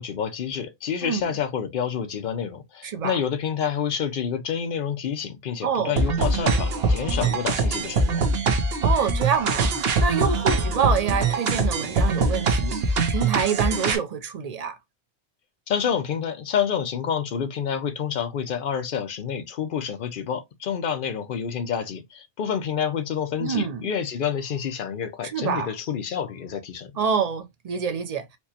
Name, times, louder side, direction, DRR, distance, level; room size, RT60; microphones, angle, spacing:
voice 1, 0.0-8.2 15.7-26.9, left 7 dB, 60° left, 0.7 m, -28 dB
voice 2, 1.0-1.3 2.8-3.1 5.6-6.0 8.8-9.7 10.0-14.8 23.4-23.9 25.2-25.7 27.0-28.3, right 7 dB, 50° right, 0.5 m, -26 dB
sound 1, 6.0-14.0, right 3 dB, 70° right, 0.9 m, -23 dB
4.4 x 2.1 x 2.7 m
omnidirectional pair, 1.1 m